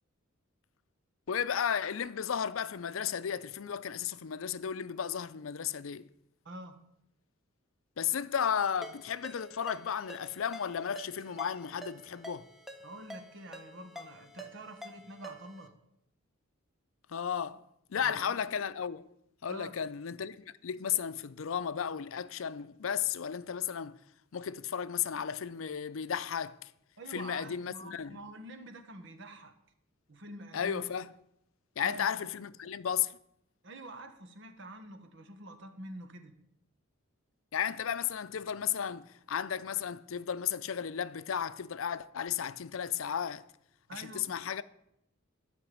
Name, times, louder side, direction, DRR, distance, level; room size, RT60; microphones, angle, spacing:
voice 1, 1.3-6.1 8.0-12.4 17.1-17.6 17.9-19.0 19.4-23.9 24.3-26.6 27.1-28.2 30.5-31.1 31.8-33.2 37.5-43.5 43.9-44.6, left 8 dB, 75° left, 0.5 m, -34 dB
voice 2, 6.4-6.8 12.8-15.7 18.0-18.4 19.5-19.7 27.0-29.5 30.1-30.8 31.8-32.3 33.6-36.3 43.9-44.2, right 1 dB, 65° right, 1.3 m, -47 dB
Ringtone, 8.8-15.7, equal, ahead, 1.1 m, -48 dB
11.0 x 5.9 x 8.5 m
head